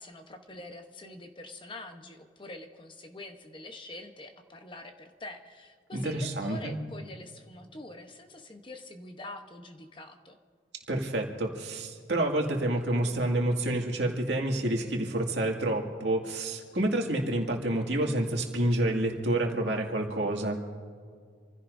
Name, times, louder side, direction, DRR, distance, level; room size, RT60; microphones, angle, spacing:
voice 1, 0.0-10.4, left 2 dB, 25° left, 5 dB, 1.0 m, -45 dB
voice 2, 5.9-6.8 10.9-20.6, right 1 dB, 70° right, 1 dB, 2.2 m, -28 dB
28.0 x 16.0 x 2.7 m, 2.1 s
head